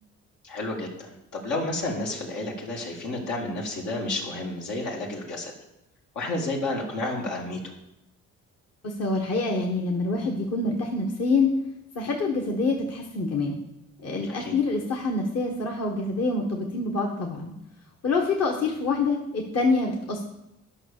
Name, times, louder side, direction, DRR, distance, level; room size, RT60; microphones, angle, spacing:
voice 1, 0.4-5.5 6.1-7.7 14.3-14.5, left 2 dB, 80° left, -1 dB, 2.4 m, -31 dB
voice 2, 8.8-11.5 11.9-13.6 14.0-17.5 18.0-20.2, left 3 dB, 55° left, 1 dB, 1.5 m, -26 dB
9.8 x 5.8 x 6.8 m, 0.87 s
cardioid pair, 90°, 30 cm